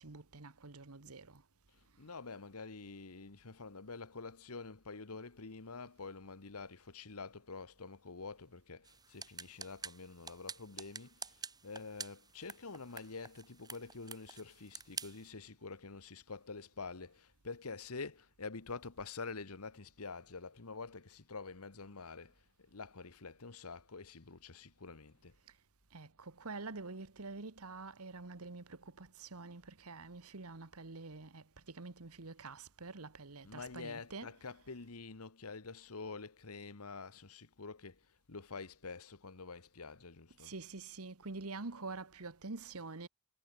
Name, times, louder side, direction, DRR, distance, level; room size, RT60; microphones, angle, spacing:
voice 1, 0.0-1.4 25.5-25.6 25.9-34.6 40.4-43.1, right 3 dB, 80° right, 1.5 m, -47 dB
voice 2, 2.0-25.4 33.4-38.0 38.3-40.5, left 4 dB, 85° left, 1.4 m, -47 dB
sound 1, 8.8-15.3, right 5 dB, 20° right, 2.1 m, -49 dB
head